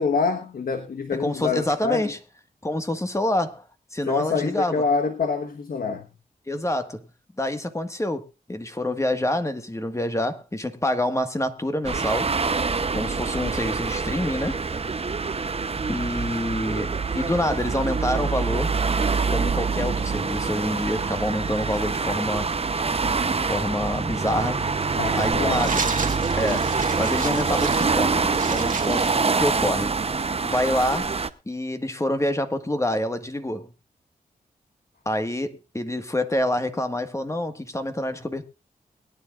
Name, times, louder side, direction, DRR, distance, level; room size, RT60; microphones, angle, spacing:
voice 1, 0.0-2.1 4.1-6.1 25.0-25.7, left 5 dB, 70° left, 1.4 m, -26 dB
voice 2, 1.2-2.2 2.6-3.6 3.9-4.8 6.5-7.0 7.4-12.3 12.9-14.6 15.9-18.7 19.3-22.5 22.8-24.6 25.1-25.8 26.4-29.9 30.4-31.1 31.4-33.7 35.0-38.4, left 1 dB, 20° left, 1.7 m, -27 dB
sound 1, 11.8-31.3, right 4 dB, 40° right, 0.9 m, -25 dB
sound 2, 25.5-30.0, right 5 dB, 60° right, 1.6 m, -34 dB
22.5 x 9.9 x 2.5 m
cardioid pair, 70°, 16 cm